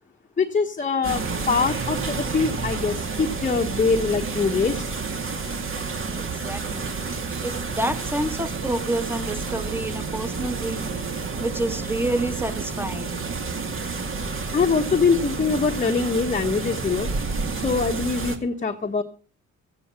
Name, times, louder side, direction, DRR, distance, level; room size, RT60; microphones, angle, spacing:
voice 1, 0.4-4.8 14.4-17.1 17.5-19.0, left 4 dB, 25° left, 3 dB, 1.2 m, -23 dB
sound 1, 1.0-18.4, right 4 dB, 45° right, 2.3 m, -30 dB
voice 2, 6.2-6.9 7.4-10.8 11.4-13.2, right 1 dB, 5° right, 10 dB, 1.5 m, -28 dB
14.5 x 9.4 x 5.8 m, 0.39 s
cardioid pair, 90°, 30 cm